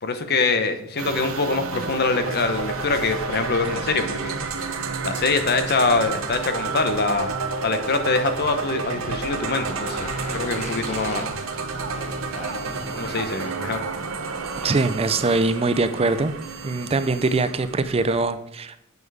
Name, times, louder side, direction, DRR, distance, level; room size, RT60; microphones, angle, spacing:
voice 1, 0.0-4.4 5.0-7.3 7.6-11.3 13.0-13.8, left 3 dB, 50° left, 8 dB, 0.9 m, -24 dB
sound 1, 1.0-18.2, right 4 dB, 75° right, 1.0 m, -30 dB
Motorcycle, 8.5-15.0, equal, 35° left, 1.8 m, -38 dB
sound 2, 11.0-18.3, right 3 dB, ahead, 3.3 m, -46 dB
voice 2, 14.6-16.3 16.6-18.8, right 3 dB, 30° right, 12 dB, 0.4 m, -22 dB
8.1 x 7.1 x 4.8 m, 0.81 s
head